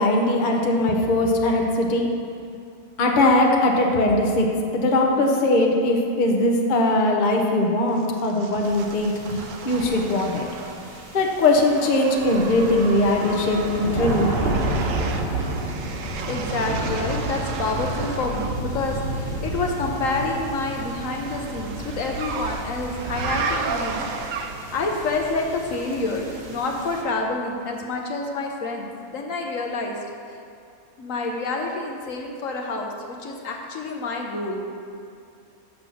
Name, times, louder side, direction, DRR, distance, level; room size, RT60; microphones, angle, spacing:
voice 1, 0.0-2.1 3.0-4.5 4.7-10.5 11.1-14.3, left 2 dB, 40° left, 1 dB, 0.9 m, -20 dB
sound 1, 7.9-11.0 11.3-18.6 20.1-24.8, right 5 dB, 65° right, 0.9 m, -34 dB
sound 2, 8.6-27.0, right 1 dB, 45° right, 1.3 m, -31 dB
voice 2, 16.3-24.0 24.3-24.4 24.7-30.0 31.0-34.6, left 3 dB, 65° left, 1 dB, 1.1 m, -28 dB
6.7 x 6.6 x 6.2 m, 2.5 s
omnidirectional pair, 1.5 m